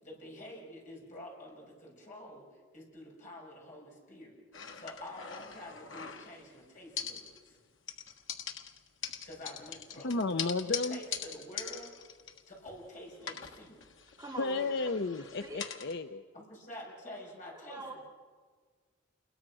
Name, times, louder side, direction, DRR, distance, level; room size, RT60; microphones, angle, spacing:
voice 1, 0.0-2.4 2.7-7.6 9.2-10.2 10.7-11.9 12.5-13.8 16.3-18.0, left 1 dB, 40° left, -2 dB, 6.8 m, -48 dB
sound 1, 4.5-6.6 7.0-7.6 7.9-12.9 13.2-15.9, left 7 dB, 85° left, 1.5 m, -42 dB
voice 2, 10.0-11.0 14.4-16.2, left 3 dB, 60° left, 8 dB, 0.6 m, -33 dB
voice 3, 14.2-15.7 17.6-18.0, right 2 dB, 15° right, -2 dB, 2.9 m, -45 dB
28.5 x 21.5 x 6.2 m, 1.6 s
head